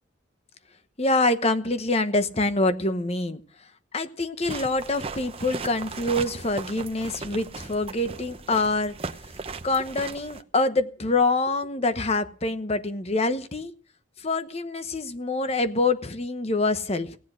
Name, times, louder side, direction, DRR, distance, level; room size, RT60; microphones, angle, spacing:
voice 1, 1.0-3.4 3.9-8.9 9.6-13.7 14.2-17.2, left 2 dB, 30° left, 11 dB, 1.0 m, -25 dB
sound 1, 4.4-10.4, right 3 dB, 30° right, 0.8 m, -37 dB
17.0 x 10.0 x 6.3 m, 0.43 s
head